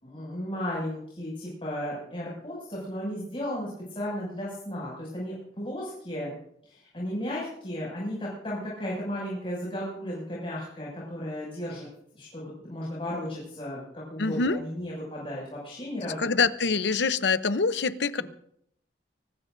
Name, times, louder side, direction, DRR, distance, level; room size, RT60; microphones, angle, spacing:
voice 1, 0.0-6.4 6.6-11.9 12.1-16.3, left 1 dB, 30° left, -6 dB, 6.6 m, -34 dB
voice 2, 14.2-14.6 16.0-18.2, left 4 dB, 75° left, 12 dB, 0.8 m, -25 dB
24.5 x 19.0 x 2.7 m, 0.72 s
head